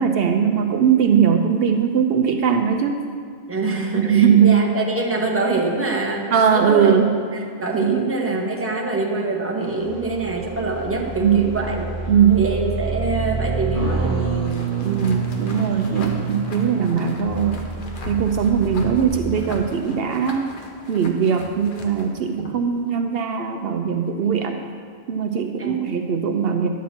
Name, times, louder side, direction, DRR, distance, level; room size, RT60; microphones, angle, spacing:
voice 1, 0.0-3.0 4.0-4.6 6.3-7.1 7.7-8.0 11.2-11.4 12.1-12.4 14.8-17.7 18.1-20.5 20.9-24.6 25.1-26.7, right 7 dB, 70° right, 5 dB, 0.8 m, -19 dB
voice 2, 3.5-7.0 7.6-11.9 12.3-14.7 16.0-16.3 25.6-25.8, right 3 dB, 15° right, -1 dB, 0.9 m, -25 dB
sound 1, 9.6-19.0, right 4 dB, 35° left, 1.8 m, -28 dB
sound 2, 14.4-22.7, left 3 dB, 55° left, 1.0 m, -38 dB
10.5 x 7.3 x 4.3 m, 2.1 s
omnidirectional pair, 1.1 m